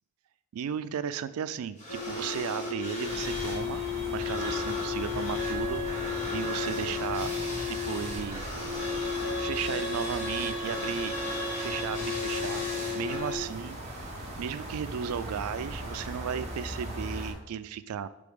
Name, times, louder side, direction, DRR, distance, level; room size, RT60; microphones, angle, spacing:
voice 1, 0.5-3.8 4.1-5.8 6.3-7.3 7.7-8.4 9.2-11.2 11.6-12.7 12.9-13.8 14.4-18.1, right 8 dB, 90° right, 15 dB, 0.3 m, -35 dB
sound 1, 1.7-3.6 3.9-13.2, left 1 dB, 35° left, 1.9 m, -40 dB
sound 2, 1.9-13.4, left 5 dB, 75° left, 1.0 m, -34 dB
sound 3, 3.0-17.3, right 1 dB, 35° right, 1.4 m, -39 dB
5.2 x 3.8 x 5.0 m, 1.0 s
head